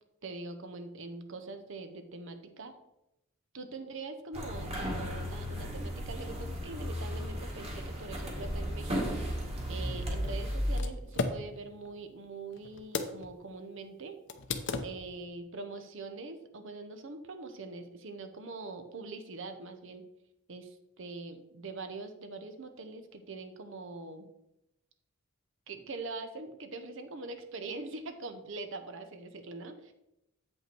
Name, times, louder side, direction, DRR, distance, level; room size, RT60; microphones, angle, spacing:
voice 1, 0.2-2.7 3.5-9.2 9.7-14.2 14.8-20.0 20.5-24.3 25.7-29.9, right 3 dB, 65° right, 8 dB, 0.8 m, -43 dB
sound 1, 4.3-10.8, equal, 30° right, 1.9 m, -35 dB
sound 2, 9.6-13.4 13.7-13.8 14.3-15.3, left 3 dB, 60° left, 0.7 m, -37 dB
7.8 x 5.5 x 4.5 m, 0.87 s
head